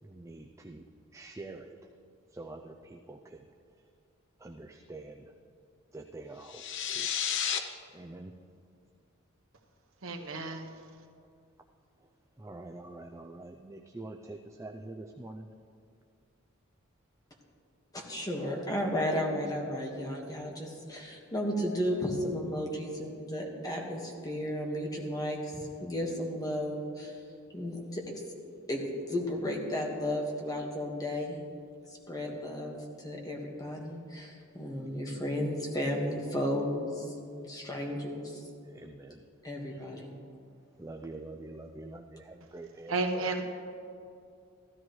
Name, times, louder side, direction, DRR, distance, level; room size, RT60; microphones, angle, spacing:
voice 1, 0.0-0.9 1.1-1.9 2.3-3.5 3.8-3.9 4.4-5.3 5.9-7.1 7.9-8.3 12.0-12.1 12.4-15.5 38.6-39.2 39.8-39.9 40.8-43.3, right 2 dB, 15° right, 3 dB, 0.4 m, -46 dB
sound 1, 6.4-7.6, left 8 dB, 65° left, 0.7 m, -31 dB
voice 2, 10.0-10.7 42.9-43.4, right 3 dB, 85° right, 3 dB, 1.0 m, -32 dB
voice 3, 17.9-27.2 27.5-28.1 28.7-31.4 31.9-38.4 39.4-40.1, equal, 20° left, 0 dB, 1.5 m, -34 dB
15.0 x 13.0 x 3.1 m, 2.5 s
head